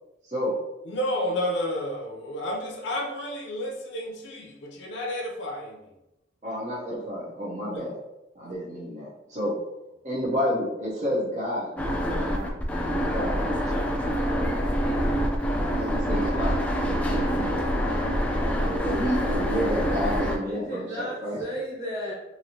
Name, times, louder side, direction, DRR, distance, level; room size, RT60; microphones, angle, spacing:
voice 1, 0.9-5.9 7.7-7.9, left 1 dB, 80° left, 1 dB, 0.6 m, -31 dB
voice 2, 6.4-8.0 8.3-9.5 10.0-11.7 12.0-12.5 12.9-14.5 15.6-17.6 18.6-21.4, equal, 40° right, -5 dB, 0.8 m, -31 dB
sound 1, 11.8-20.4, equal, 10° left, 0.3 m, -26 dB
voice 3, 20.5-22.1, equal, 20° right, -7 dB, 1.3 m, -34 dB
3.1 x 2.6 x 2.8 m, 0.91 s
head